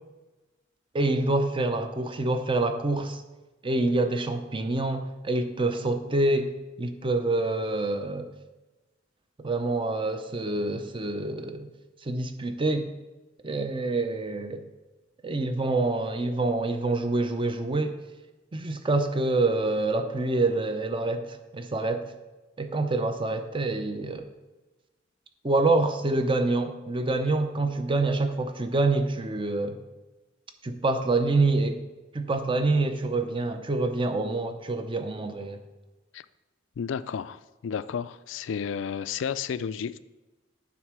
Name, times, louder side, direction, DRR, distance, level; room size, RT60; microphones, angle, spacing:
voice 1, 0.9-3.2 3.6-8.3 9.4-11.7 12.0-12.9 13.4-14.6 15.2-18.0 18.5-22.1 22.6-24.3 25.4-29.8 30.6-31.8 32.1-35.6, right 2 dB, 25° right, 0.6 m, -26 dB
voice 2, 36.8-40.0, left 7 dB, 70° left, 0.3 m, -32 dB
9.4 x 3.7 x 6.0 m
head